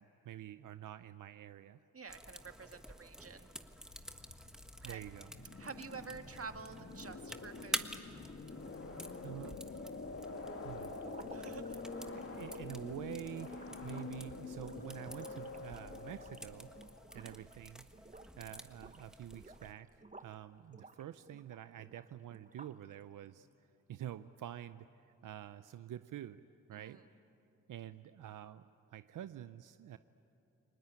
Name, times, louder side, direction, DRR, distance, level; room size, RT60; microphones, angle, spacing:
voice 1, 0.0-1.8 4.8-5.3 9.2-9.6 10.6-10.9 12.1-16.8 17.1-17.9 18.4-23.5 23.9-24.9 25.2-26.4 26.7-27.0 27.7-30.0, right 11 dB, 90° right, 12 dB, 0.6 m, -47 dB
voice 2, 1.9-3.5 4.8-5.1 5.6-7.9 11.3-11.8 17.1-17.4 26.7-27.0, right 5 dB, 50° right, 7 dB, 1.7 m, -49 dB
sound 1, 2.1-19.7, equal, ahead, 1.4 m, -49 dB
sound 2, 3.7-17.1, left 3 dB, 45° left, 1.9 m, -47 dB
sound 3, 11.0-17.6 17.9-18.4 18.7-20.4 20.7-22.9, right 3 dB, 25° right, 1.2 m, -56 dB
30.0 x 20.0 x 9.0 m, 2.7 s
cardioid pair, 60°, 31 cm